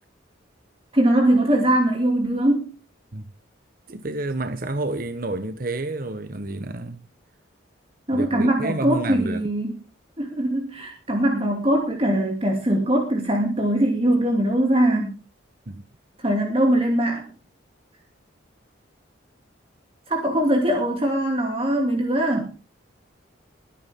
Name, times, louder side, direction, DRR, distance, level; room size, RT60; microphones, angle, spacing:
voice 1, 0.9-2.7 8.1-9.7 10.2-15.1 16.2-17.3 20.1-22.5, right 1 dB, 30° right, 2.6 m, -21 dB
voice 2, 3.9-7.0 8.1-9.4 15.7-15.8, right 2 dB, 45° right, 1.0 m, -29 dB
21.5 x 10.0 x 3.7 m
head